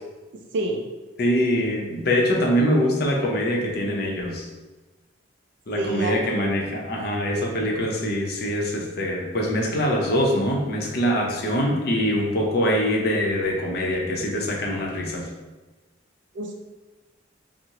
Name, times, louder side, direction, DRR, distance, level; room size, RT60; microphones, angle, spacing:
voice 1, 0.3-0.8 5.8-6.2 16.3-16.5, right 2 dB, 60° right, 2 dB, 0.3 m, -27 dB
voice 2, 1.2-4.5 5.7-15.3, equal, 50° left, 0 dB, 0.6 m, -23 dB
3.6 x 2.0 x 2.9 m, 1.2 s
head